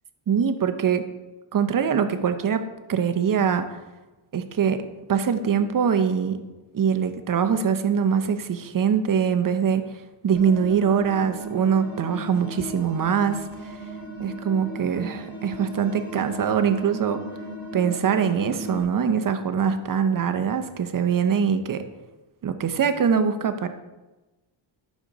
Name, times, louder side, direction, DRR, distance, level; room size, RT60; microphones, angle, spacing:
voice 1, 0.3-1.1 1.5-2.6 2.9-3.8 4.3-4.8 5.1-6.4 6.7-9.8 10.2-13.8 14.2-17.2 17.7-21.8 22.4-23.7, right 7 dB, 40° right, 9 dB, 0.8 m, -23 dB
sound 1, 10.3-18.8, right 2 dB, 20° left, 2.7 m, -36 dB
10.0 x 6.3 x 4.0 m, 1.1 s
cardioid pair, 115°, 50 cm